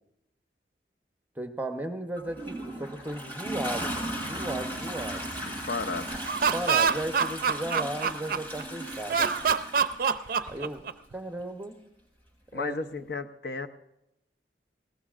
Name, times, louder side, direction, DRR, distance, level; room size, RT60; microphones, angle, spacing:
voice 1, 1.4-5.2 6.5-9.3 10.5-10.8 11.1-11.8 12.5-12.8, right 1 dB, 10° right, 6 dB, 0.8 m, -35 dB
Toilet flush, 2.2-10.6 11.6-11.7, right 1 dB, 10° left, 5.9 m, -36 dB
voice 2, 5.4-6.2 12.5-13.7, left 4 dB, 65° left, 8 dB, 0.7 m, -34 dB
Laughter, 6.1-8.6 9.1-11.1, right 6 dB, 55° right, 0.5 m, -25 dB
20.5 x 17.5 x 2.5 m, 0.87 s
head